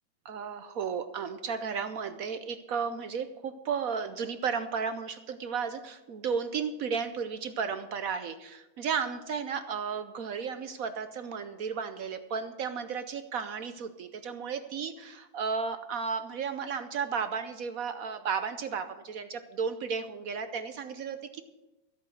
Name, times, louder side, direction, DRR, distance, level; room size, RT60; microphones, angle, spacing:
voice 1, 0.2-21.4, right 6 dB, 70° right, 10 dB, 0.8 m, -34 dB
13.5 x 8.3 x 6.5 m, 1.0 s
omnidirectional pair, 2.2 m